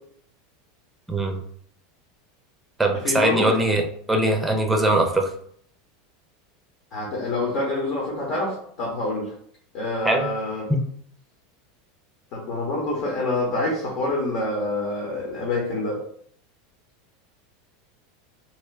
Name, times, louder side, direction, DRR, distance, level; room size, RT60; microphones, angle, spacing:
voice 1, 1.1-1.4 2.8-3.8 4.1-5.3 10.0-10.3 10.7-10.8, right 1 dB, 10° right, 4 dB, 0.7 m, -21 dB
voice 2, 3.0-3.5 6.9-9.3 9.7-10.7 12.3-16.0, left 2 dB, 50° left, -2 dB, 1.2 m, -26 dB
3.2 x 2.9 x 3.3 m, 0.64 s
figure-of-eight pair, 80°, 0 cm